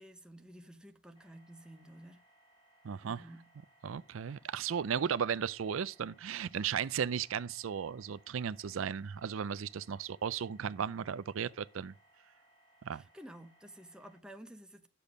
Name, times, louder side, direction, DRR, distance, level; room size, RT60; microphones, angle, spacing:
voice 1, 0.0-2.2 3.0-3.4 4.2-4.4 12.9-14.9, right 1 dB, 5° right, 0.8 m, -52 dB
sound 1, 1.1-14.2, right 1 dB, 25° left, 1.9 m, -67 dB
voice 2, 2.8-3.3 3.8-11.9 12.8-13.0, right 7 dB, 90° right, 0.4 m, -35 dB
10.0 x 6.9 x 5.2 m
head